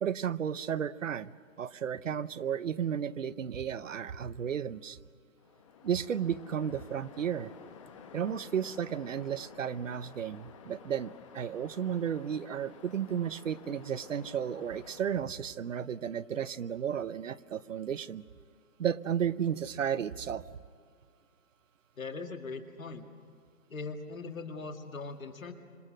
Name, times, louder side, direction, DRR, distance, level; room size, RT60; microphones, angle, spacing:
voice 1, 0.0-1.3 1.6-5.0 5.8-7.5 8.1-18.2 18.8-20.4, right 8 dB, 65° right, 16 dB, 0.9 m, -33 dB
Waves surf, 5.4-15.2, left 7 dB, 25° left, 1.3 m, -52 dB
voice 2, 22.0-23.1 23.7-25.5, left 4 dB, 75° left, 5 dB, 2.1 m, -40 dB
27.0 x 26.5 x 6.3 m, 2.2 s
hypercardioid pair, 170°, 41 cm